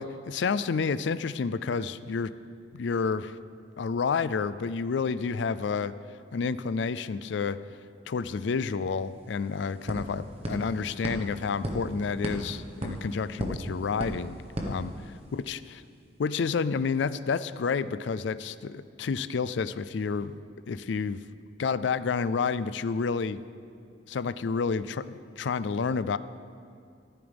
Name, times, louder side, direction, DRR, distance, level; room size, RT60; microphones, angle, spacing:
voice 1, 0.0-2.3 2.7-3.4 3.8-5.9 6.3-7.6 8.1-15.8 16.2-20.4 20.7-21.2 21.6-23.4 24.1-26.2, left 5 dB, 70° left, 15 dB, 0.4 m, -30 dB
sound 1, 8.8-8.9 9.1-15.5, equal, 35° right, 1.2 m, -37 dB
14.0 x 12.0 x 3.5 m, 2.4 s
head